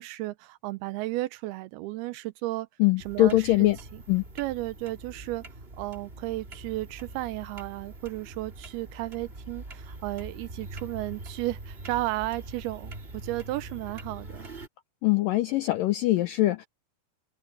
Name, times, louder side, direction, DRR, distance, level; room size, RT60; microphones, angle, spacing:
voice 1, 0.0-2.7 3.1-3.5 4.4-5.5 5.8-14.5, right 18 dB, 80° right, 2.3 m, -33 dB
voice 2, 2.8-3.8 4.1-4.2 15.0-16.7, left 16 dB, 90° left, 1.9 m, -22 dB
sound 1, 3.0-14.7, right 2 dB, 30° right, 1.1 m, -43 dB
omnidirectional pair, 4.8 m